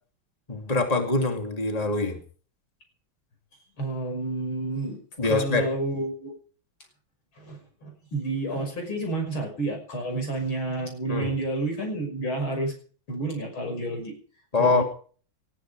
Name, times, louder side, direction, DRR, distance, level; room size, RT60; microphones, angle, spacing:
voice 1, 0.5-2.2 5.2-5.7 11.1-11.3 14.5-14.8, left 3 dB, 20° left, 5 dB, 2.8 m, -24 dB
voice 2, 3.8-5.0 5.2-6.3 7.4-12.7 13.1-14.1 14.6-14.8, right 2 dB, 85° left, 4 dB, 6.7 m, -30 dB
20.5 x 13.5 x 4.9 m, 0.42 s
omnidirectional pair, 2.2 m